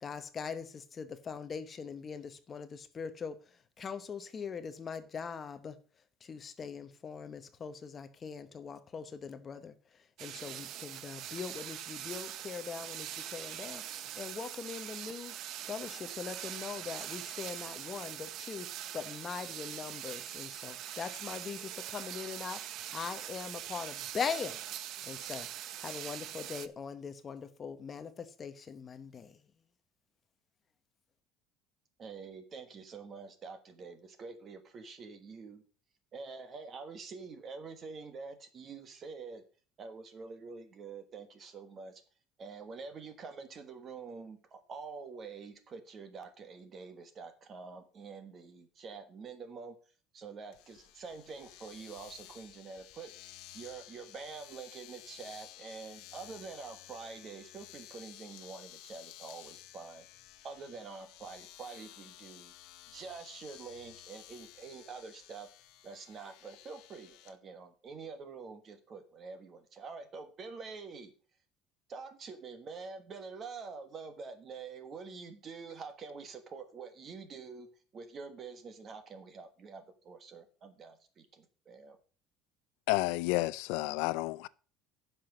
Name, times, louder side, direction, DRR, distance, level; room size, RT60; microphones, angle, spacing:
voice 1, 0.0-3.4 3.8-5.8 6.2-9.7 10.2-15.3 15.7-18.7 18.9-24.6 25.0-25.5 25.8-29.4, left 6 dB, 20° left, 0.8 m, -41 dB
sound 1, 10.2-26.7, right 11 dB, 45° right, 0.6 m, -43 dB
voice 2, 32.0-35.6 36.1-39.4 39.8-42.0 42.4-49.7 50.1-60.1 60.4-62.5 62.9-65.5 65.8-71.1 71.9-77.7 77.9-82.0, right 4 dB, 25° right, 1.3 m, -46 dB
Domestic sounds home sounds, 50.5-67.3, left 14 dB, 60° left, 0.8 m, -54 dB
voice 3, 82.9-84.5, left 21 dB, 75° left, 0.4 m, -31 dB
10.5 x 6.0 x 5.8 m
cardioid pair, 180°, 0 cm